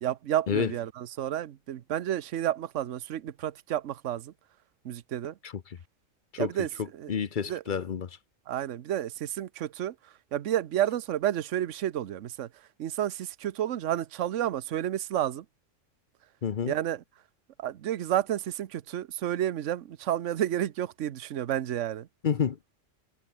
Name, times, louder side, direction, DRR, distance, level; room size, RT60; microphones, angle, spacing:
voice 1, 0.0-4.3 4.8-5.3 6.4-7.1 7.5-7.6 8.5-9.9 10.3-12.5 12.8-15.4 16.7-17.0 17.6-22.1, right 11 dB, 70° right, 1.1 m, -31 dB
voice 2, 5.4-5.8 6.3-6.5 7.1-8.2 16.4-16.7 22.2-22.6, left 7 dB, 45° left, 0.8 m, -29 dB
omnidirectional pair, 1.4 m